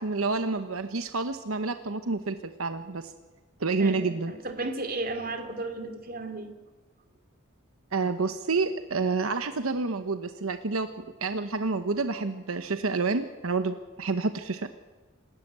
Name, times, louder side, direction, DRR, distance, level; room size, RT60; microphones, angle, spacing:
voice 1, 0.0-3.1 3.6-4.3 7.9-14.7, right 3 dB, 85° right, 9 dB, 1.0 m, -29 dB
voice 2, 3.8-6.5, right 2 dB, 45° right, 7 dB, 2.5 m, -34 dB
26.5 x 13.0 x 8.1 m, 1.2 s
head